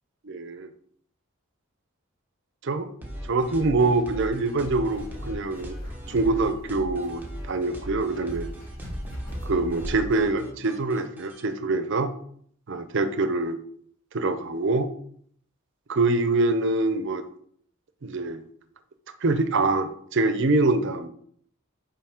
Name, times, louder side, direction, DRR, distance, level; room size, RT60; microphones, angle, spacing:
voice 1, 0.2-0.7 2.6-2.9 3.3-5.8 6.1-8.5 9.4-12.1 12.7-13.6 14.1-14.9 15.9-17.2 18.0-18.4 19.2-21.1, right 3 dB, 60° right, 10 dB, 0.6 m, -24 dB
sound 1, 3.0-11.4, equal, 10° right, 1.1 m, -39 dB
sound 2, 4.3-10.3, equal, 45° left, 2.8 m, -40 dB
5.8 x 5.0 x 3.6 m, 0.62 s
head